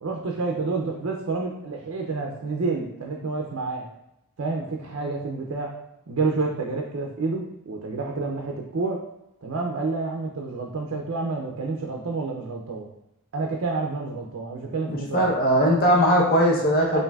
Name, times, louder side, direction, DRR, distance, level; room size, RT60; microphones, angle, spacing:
voice 1, 0.0-3.9 4.4-5.7 6.1-9.0 9.4-12.9 13.3-15.3 15.8-16.0 16.9-17.0, right 3 dB, 65° right, 1 dB, 0.5 m, -29 dB
voice 2, 14.9-17.0, equal, 45° left, -2 dB, 0.8 m, -20 dB
5.6 x 2.6 x 2.3 m, 0.86 s
head